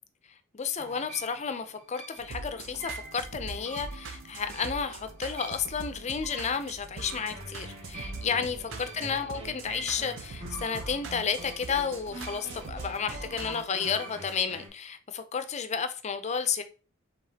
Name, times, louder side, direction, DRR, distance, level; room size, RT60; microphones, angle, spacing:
voice 1, 0.5-16.6, left 6 dB, 35° left, 0.5 m, -32 dB
sound 1, 0.8-14.7, right 1 dB, 35° right, 1.6 m, -45 dB
sound 2, 2.2-13.6, right 3 dB, 75° right, 0.6 m, -42 dB
4.8 x 3.5 x 2.7 m
head